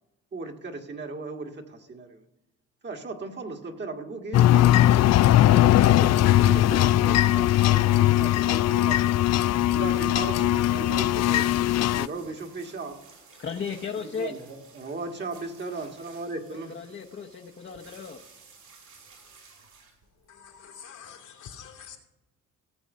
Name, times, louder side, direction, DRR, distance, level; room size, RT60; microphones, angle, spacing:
voice 1, 0.3-2.2 2.8-4.8 5.3-9.1 9.7-11.5 11.9-13.0 13.9-16.7, right 3 dB, 35° right, 3 dB, 1.7 m, -37 dB
sound 1, 4.3-12.1, left 14 dB, 60° left, 0.4 m, -20 dB
sound 2, 10.4-20.8, right 4 dB, 75° right, 5.0 m, -54 dB
voice 2, 13.4-14.3 16.7-18.2, left 6 dB, 40° left, 1 dB, 1.0 m, -35 dB
voice 3, 20.3-22.0, left 7 dB, 80° left, 1 dB, 2.6 m, -46 dB
16.5 x 7.2 x 5.4 m, 1.0 s
cardioid pair, 90°, 30 cm